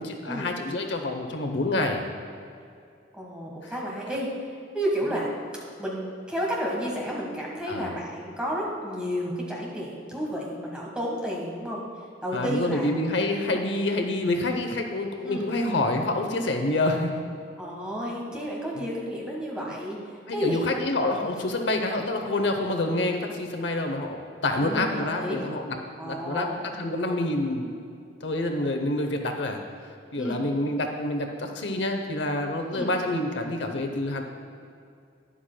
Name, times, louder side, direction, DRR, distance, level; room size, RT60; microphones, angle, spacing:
voice 1, 0.0-2.0 3.6-3.7 7.7-7.9 12.3-17.3 18.8-18.9 20.3-27.7 28.2-29.6 30.1-34.2, left 2 dB, 75° left, 4 dB, 0.8 m, -27 dB
voice 2, 3.1-4.3 4.7-5.3 5.8-11.8 12.2-13.0 15.2-15.5 17.6-20.0 20.3-20.7 24.6-25.4 26.0-26.7 30.2-30.4 32.7-32.9, equal, 5° right, -3 dB, 1.4 m, -31 dB
12.0 x 10.0 x 2.3 m, 2.4 s
head